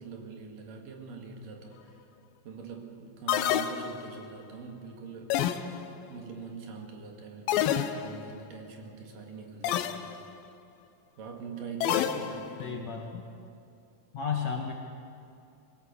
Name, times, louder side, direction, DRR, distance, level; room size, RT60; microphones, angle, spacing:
voice 1, 0.0-2.0 2.4-5.4 6.1-10.1 11.2-12.9, right 5 dB, 65° right, 2 dB, 3.4 m, -43 dB
sound 1, 3.3-4.3 5.3-6.1 7.5-8.3 9.6-10.2 11.8-12.7, left 10 dB, 80° left, 2.6 m, -29 dB
voice 2, 12.6-13.2 14.1-14.7, left 7 dB, 60° left, 1 dB, 2.0 m, -33 dB
22.5 x 17.0 x 7.0 m, 2.7 s
omnidirectional pair, 4.3 m